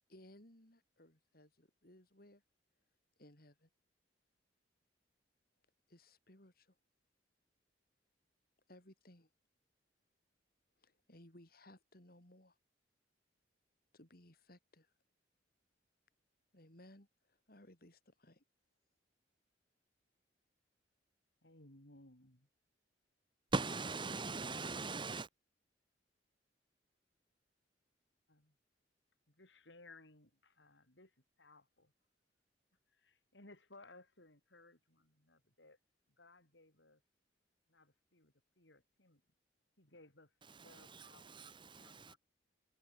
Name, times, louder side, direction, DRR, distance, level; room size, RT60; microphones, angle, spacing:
voice 1, 0.1-2.4 3.2-3.7 5.9-6.7 8.7-9.3 10.8-12.6 13.9-14.9 16.5-18.4, left 1 dB, 55° left, 5.1 m, -61 dB
voice 2, 21.4-22.5 28.3-28.6 29.3-31.9 32.9-35.8 36.1-37.0 37.7-39.2 39.8-42.2, left 2 dB, 75° left, 6.7 m, -62 dB
voice 3, 23.5-25.3 40.9-42.1, right 3 dB, 25° right, 1.1 m, -40 dB
head